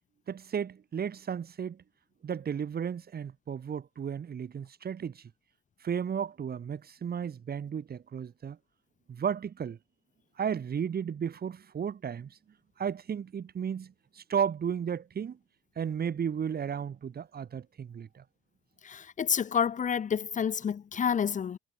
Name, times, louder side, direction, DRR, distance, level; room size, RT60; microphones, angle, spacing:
voice 1, 0.3-1.8 2.2-5.2 5.8-8.6 9.1-9.8 10.4-12.4 12.8-15.4 15.8-18.2, right 7 dB, 50° right, 4.3 m, -34 dB
voice 2, 18.8-21.6, left 7 dB, 40° left, 0.8 m, -29 dB
cardioid pair, 90°, 20 cm